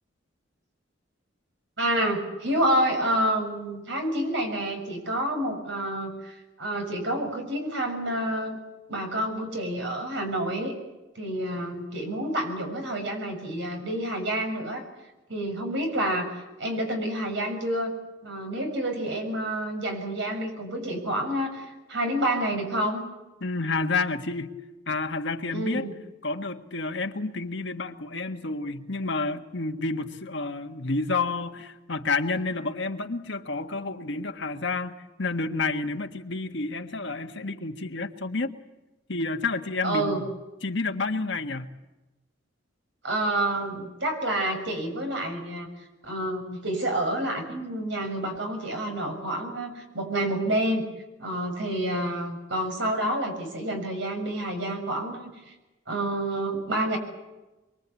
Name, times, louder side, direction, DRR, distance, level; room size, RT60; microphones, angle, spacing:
voice 1, 1.8-8.6 8.9-10.7 11.1-14.8 15.3-16.3 16.6-17.9 18.2-23.0 25.5-25.9 39.8-40.2 43.0-45.7 46.0-50.9 51.2-55.5 55.9-57.0, right 1 dB, 70° right, 4 dB, 6.9 m, -28 dB
voice 2, 23.4-24.5 24.9-25.9 26.2-38.5 39.1-40.3 40.6-41.7, left 3 dB, 65° left, 6 dB, 1.7 m, -30 dB
24.5 x 23.5 x 8.5 m, 1.1 s
head